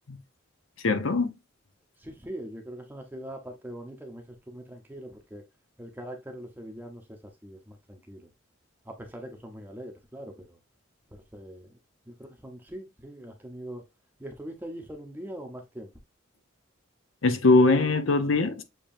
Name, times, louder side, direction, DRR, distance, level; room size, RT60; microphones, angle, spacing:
voice 1, 0.8-1.3 17.2-18.6, left 3 dB, 75° left, 0.8 m, -21 dB
voice 2, 2.0-5.4 5.8-8.3 8.8-10.6 11.1-11.8 12.1-13.8 14.2-15.9, right 1 dB, 10° right, 0.7 m, -42 dB
7.0 x 2.9 x 2.6 m
head